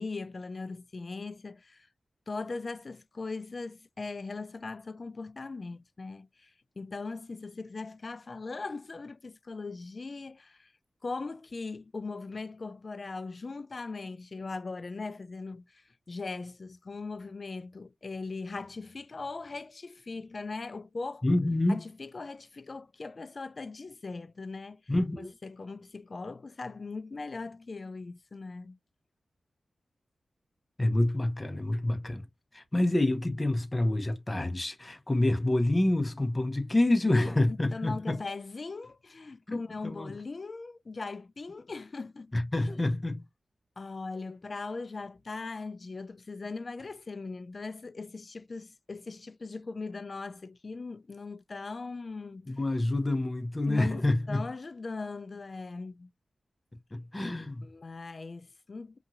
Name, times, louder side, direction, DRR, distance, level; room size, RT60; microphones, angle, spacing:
voice 1, 0.0-1.9 2.3-10.7 11.0-21.2 21.7-28.8 37.1-42.3 43.8-52.5 53.7-56.1 57.6-59.0, left 3 dB, 50° left, 0.4 m, -40 dB
voice 2, 21.2-21.9 24.9-25.3 30.8-32.3 32.5-38.2 39.5-40.1 42.3-43.3 52.5-54.4 56.9-57.7, left 1 dB, 25° left, 0.7 m, -27 dB
2.9 x 2.6 x 2.5 m
cardioid pair, 65°, 0 cm